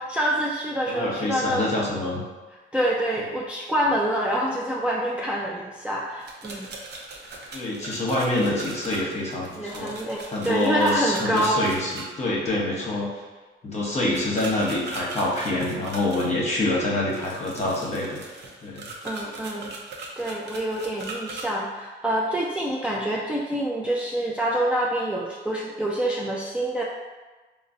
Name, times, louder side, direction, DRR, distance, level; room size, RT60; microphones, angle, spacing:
voice 1, 0.0-1.6 2.7-6.7 9.6-11.7 14.0-14.2 19.0-19.7 20.2-26.8, right 1 dB, 5° right, -4 dB, 0.3 m, -26 dB
voice 2, 0.9-2.2 7.5-9.9 10.3-13.1 13.6-18.2 18.6-18.9, left 2 dB, 35° left, -4 dB, 0.9 m, -26 dB
sound 1, 6.2-12.0 14.1-16.3 17.1-21.5, right 2 dB, 60° right, 0.6 m, -39 dB
3.8 x 2.0 x 2.6 m, 1.3 s
cardioid pair, 90°, 20 cm